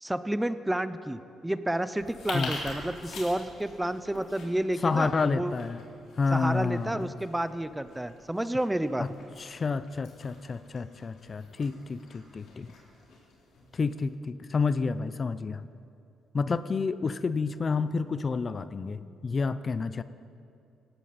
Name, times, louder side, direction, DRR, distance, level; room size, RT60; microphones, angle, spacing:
voice 1, 0.0-5.5 6.3-9.1, right 1 dB, 10° right, 13 dB, 0.6 m, -30 dB
sound 1, 1.9-14.1, left 3 dB, 75° left, 4.1 m, -45 dB
voice 2, 4.8-5.8 6.2-7.1 9.0-9.1 9.4-12.7 13.7-15.6 16.3-20.0, left 4 dB, 35° left, 14 dB, 0.5 m, -29 dB
18.5 x 16.0 x 4.2 m, 2.6 s
cardioid pair, 90°, 0 cm